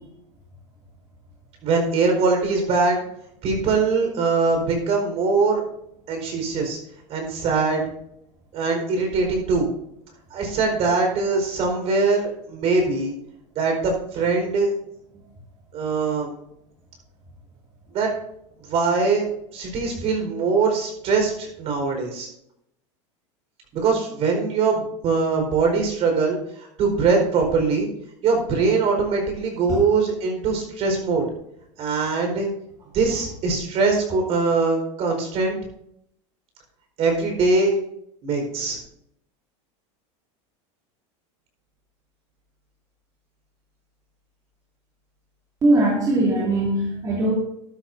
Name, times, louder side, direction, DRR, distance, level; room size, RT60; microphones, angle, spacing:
voice 1, 1.6-3.0 3.4-5.6 6.1-6.8 7.1-7.9 8.5-9.7 10.3-13.1 13.5-14.7 15.7-16.3 17.9-18.1 18.6-19.2 19.5-22.3 23.7-27.9 28.2-31.3 31.8-32.5 32.9-35.6 37.0-37.8 38.2-38.8, right 4 dB, 45° right, 2 dB, 4.6 m, -22 dB
voice 2, 45.6-47.4, right 2 dB, 25° right, -4 dB, 2.4 m, -20 dB
13.0 x 12.0 x 2.7 m, 0.76 s
supercardioid pair, 135°, 15 cm